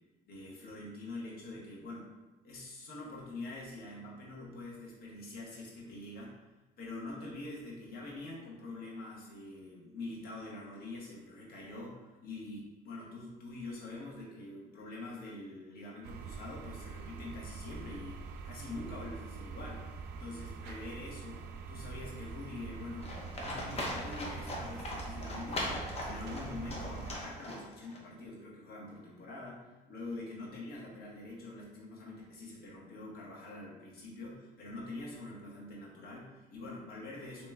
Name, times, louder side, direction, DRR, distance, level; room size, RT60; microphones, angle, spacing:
voice 1, 0.3-2.2 2.4-6.4 6.8-37.5, left 2 dB, 65° left, -3 dB, 1.2 m, -45 dB
sound 1, 16.0-27.1, right 4 dB, 85° right, 0.4 m, -44 dB
Livestock farm animals working animals, 23.0-28.0, left 1 dB, 35° left, 0.9 m, -40 dB
3.5 x 2.9 x 3.3 m, 1.1 s
cardioid pair, 110°, 17 cm